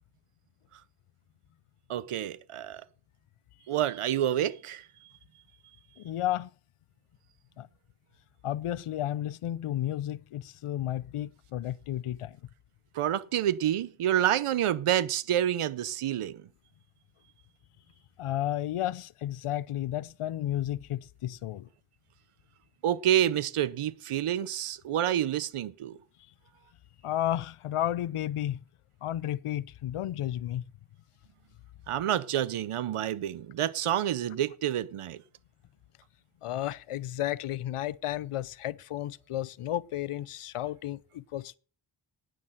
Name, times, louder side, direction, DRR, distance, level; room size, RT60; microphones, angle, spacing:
voice 1, 1.9-2.8 3.7-4.8 12.9-16.4 22.8-26.0 31.9-35.2, right 11 dB, 90° right, 0.7 m, -28 dB
voice 2, 6.0-6.5 7.6-7.7 8.4-12.4 18.2-21.7 27.0-28.6 29.0-30.6 36.4-41.5, left 12 dB, 90° left, 0.6 m, -32 dB
9.8 x 9.2 x 7.7 m
wide cardioid pair, 70°, 50 cm